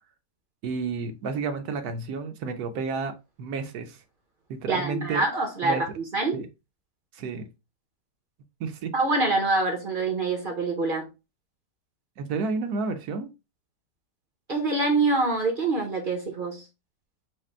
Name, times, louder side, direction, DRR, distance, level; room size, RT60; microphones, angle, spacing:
voice 1, 0.6-3.1 3.4-4.0 4.5-5.3 5.6-5.8 6.3-6.5 7.1-7.5 8.6-8.9 12.2-13.3, right 4 dB, 70° right, 1.1 m, -31 dB
voice 2, 4.7-6.4 8.9-11.1 14.5-16.6, right 3 dB, 45° right, 0.7 m, -25 dB
5.0 x 2.1 x 4.2 m
omnidirectional pair, 1.8 m